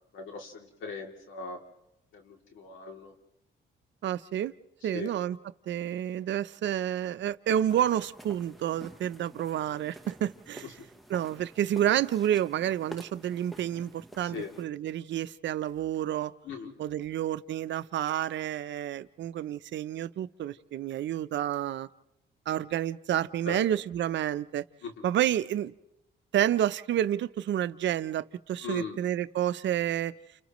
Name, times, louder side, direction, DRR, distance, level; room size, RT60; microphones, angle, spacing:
voice 1, 0.1-1.6 2.1-3.1 4.9-5.1 14.3-14.5 16.4-16.7 23.5-23.6 24.8-25.0 28.6-29.0, left 4 dB, 80° left, 2.9 m, -39 dB
voice 2, 4.0-4.5 4.8-5.4 5.7-10.7 11.1-16.3 16.8-21.9 22.5-24.6 25.0-25.7 26.3-30.1, right 11 dB, 65° right, 0.7 m, -29 dB
sound 1, 7.7-14.6, right 1 dB, ahead, 1.1 m, -49 dB
30.0 x 29.5 x 3.1 m
cardioid pair, 90°, 20 cm